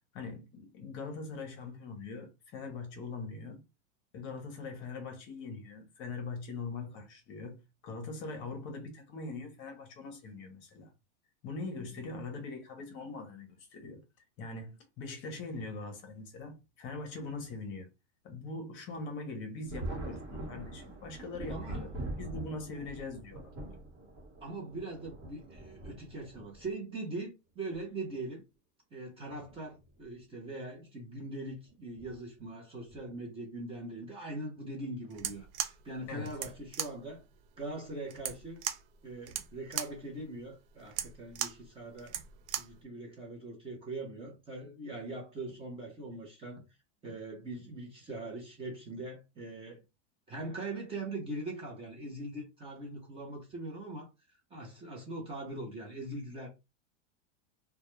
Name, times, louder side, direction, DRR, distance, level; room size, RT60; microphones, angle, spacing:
voice 1, 0.1-3.6 4.1-10.9 11.4-14.0 14.4-17.9 18.2-23.5 36.1-36.3, left 3 dB, 30° left, 0.7 m, -42 dB
Thunder, 19.7-26.7 27.7-27.8 29.3-29.5 29.9-30.0 32.0-32.2 32.9-33.2, right 2 dB, 40° right, 1.0 m, -43 dB
voice 2, 21.5-21.8 24.4-28.4 28.9-37.2 37.6-38.6 39.0-42.2 42.6-46.6 47.0-49.8 50.3-54.1 54.5-56.5, right 2 dB, 15° right, 0.5 m, -41 dB
sound 1, 35.1-42.8, right 10 dB, 65° right, 0.5 m, -39 dB
2.2 x 2.1 x 3.0 m
supercardioid pair, 150°, 37 cm